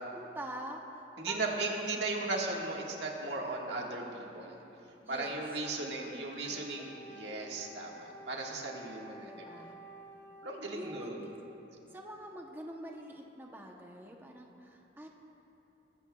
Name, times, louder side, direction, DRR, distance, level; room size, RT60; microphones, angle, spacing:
voice 1, 0.1-1.4 2.0-2.1 5.0-5.4 5.8-6.9 9.2-9.8 10.7-11.3 11.9-15.1, right 1 dB, 10° right, 0 dB, 0.8 m, -46 dB
voice 2, 1.2-4.6 5.1-9.6 10.4-11.2, right 2 dB, 75° right, -1 dB, 1.7 m, -37 dB
Wind instrument woodwind instrument, 5.5-10.7, equal, 45° left, 2.0 m, -51 dB
21.0 x 14.0 x 2.3 m, 2.9 s
head